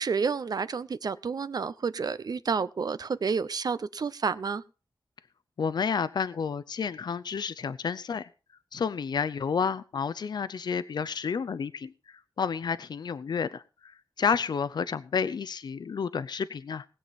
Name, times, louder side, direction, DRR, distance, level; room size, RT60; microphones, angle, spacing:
voice 1, 0.0-4.6, right 5 dB, 55° right, 0.7 m, -30 dB
voice 2, 5.6-8.3 8.7-16.8, left 6 dB, 65° left, 0.6 m, -30 dB
19.5 x 7.8 x 4.1 m
wide cardioid pair, 145°, 8 cm